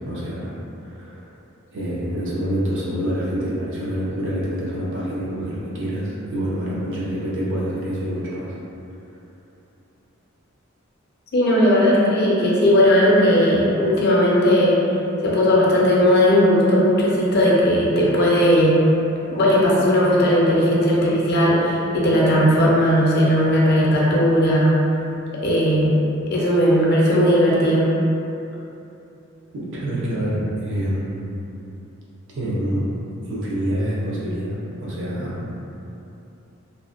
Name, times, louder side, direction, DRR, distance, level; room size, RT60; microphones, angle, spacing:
voice 1, 0.0-0.5 0.8-1.3 1.7-8.5 29.5-31.3 32.3-32.8 33.2-35.5, equal, 60° right, -7 dB, 0.6 m, -26 dB
voice 2, 11.3-14.8 15.2-18.8 19.3-24.7 25.4-26.0 26.3-27.9, equal, 50° left, -5 dB, 0.5 m, -17 dB
2.6 x 2.1 x 2.4 m, 2.8 s
head